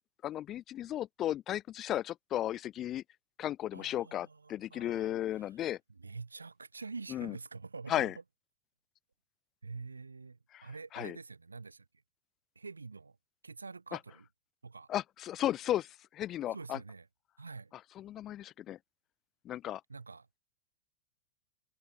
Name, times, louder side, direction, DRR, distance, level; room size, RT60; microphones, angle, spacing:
voice 1, 0.2-3.0 3.4-5.8 7.1-7.3 7.9-8.1 10.5-10.7 10.9-11.2 13.9-14.0 14.9-16.8 18.0-18.8 19.4-19.8, left 12 dB, 30° left, 0.5 m, -35 dB
voice 2, 3.7-5.7 6.0-8.1 9.6-11.8 12.5-13.2 13.4-14.3 14.6-14.9 16.5-17.1 17.4-17.7 19.9-20.3, right 4 dB, 80° right, 1.3 m, -46 dB
figure-of-eight pair, 90°, 0 cm